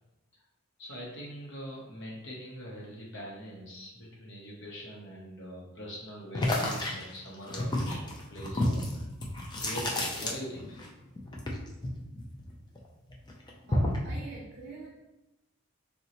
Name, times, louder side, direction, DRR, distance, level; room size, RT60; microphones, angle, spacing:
voice 1, 0.8-9.0 9.5-10.8, equal, 55° left, -3 dB, 0.6 m, -43 dB
sound 1, 6.3-10.9 11.1-12.8 13.1-14.1, left 1 dB, 20° left, 0.3 m, -31 dB
voice 2, 13.7-14.9, right 3 dB, 45° right, -4 dB, 0.4 m, -45 dB
3.7 x 2.0 x 2.8 m, 0.96 s
head